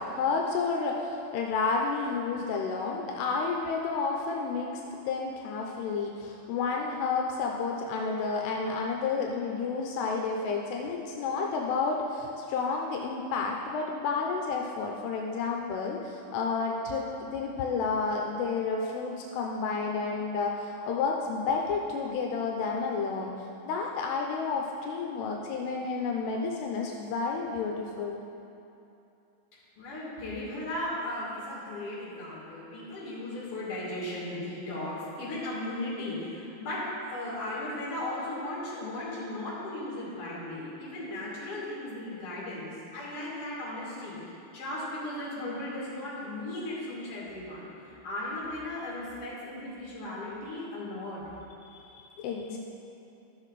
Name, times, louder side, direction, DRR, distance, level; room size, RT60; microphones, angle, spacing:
voice 1, 0.0-17.0 17.3-23.3 23.6-28.2 51.9-52.6, left 4 dB, 85° left, 0 dB, 2.7 m, -31 dB
voice 2, 29.8-51.2, left 1 dB, 40° left, -7 dB, 2.8 m, -36 dB
13.0 x 6.3 x 4.0 m, 2.8 s
omnidirectional pair, 4.7 m